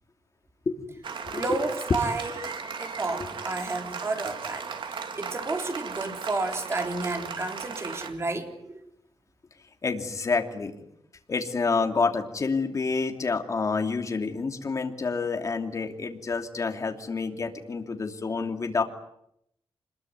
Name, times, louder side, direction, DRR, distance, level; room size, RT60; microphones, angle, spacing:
voice 1, 0.7-1.4 3.2-3.3 9.8-10.7 11.3-18.8, left 4 dB, 35° left, 4 dB, 2.8 m, -28 dB
Applause, 1.0-8.1, right 6 dB, 65° right, 2.9 m, -37 dB
voice 2, 1.3-2.5 2.8-8.8, right 3 dB, 30° right, 4 dB, 3.9 m, -31 dB
26.0 x 21.5 x 9.5 m, 0.76 s
wide cardioid pair, 155°, 9 cm